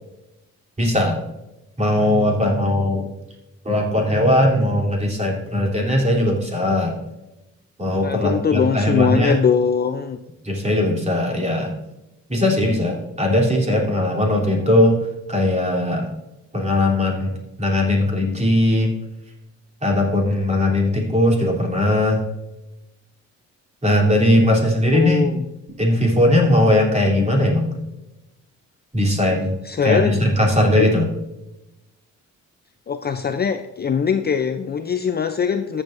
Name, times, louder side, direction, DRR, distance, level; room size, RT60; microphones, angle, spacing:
voice 1, 0.8-1.2 1.8-3.0 3.6-7.0 7.8-9.4 10.4-11.7 12.3-15.0 15.3-16.1 16.5-18.9 19.8-22.2 23.8-25.3 25.8-27.7 28.9-29.5 29.8-31.1, left 1 dB, 20° right, -2 dB, 3.4 m, -19 dB
voice 2, 8.0-10.2 24.9-25.4 29.6-30.2 30.8-30.9 32.9-35.8, left 7 dB, 35° left, 8 dB, 0.5 m, -21 dB
14.0 x 7.3 x 2.6 m, 0.94 s
cardioid pair, 90°, 30 cm